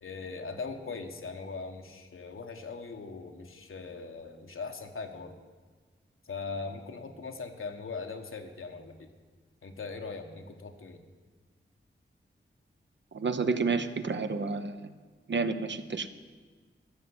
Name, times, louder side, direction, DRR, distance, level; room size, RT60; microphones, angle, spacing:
voice 1, 0.0-5.3 6.2-9.1 9.6-11.0, left 4 dB, 80° left, 5 dB, 1.3 m, -40 dB
voice 2, 13.1-14.9 15.3-16.1, right 4 dB, 60° right, 10 dB, 0.8 m, -30 dB
13.0 x 6.8 x 9.6 m, 1.4 s
wide cardioid pair, 70°, 21 cm